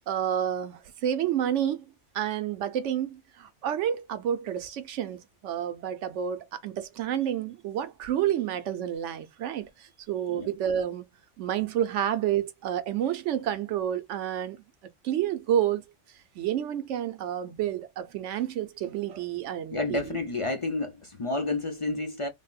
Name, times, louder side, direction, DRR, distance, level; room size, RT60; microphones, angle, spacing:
voice 1, 0.1-1.8 2.1-11.1 11.4-14.6 15.0-15.8 16.3-20.2, right 10 dB, 90° right, 1.0 m, -29 dB
voice 2, 19.7-22.3, left 2 dB, 40° left, 0.5 m, -30 dB
3.4 x 2.1 x 2.3 m
omnidirectional pair, 1.2 m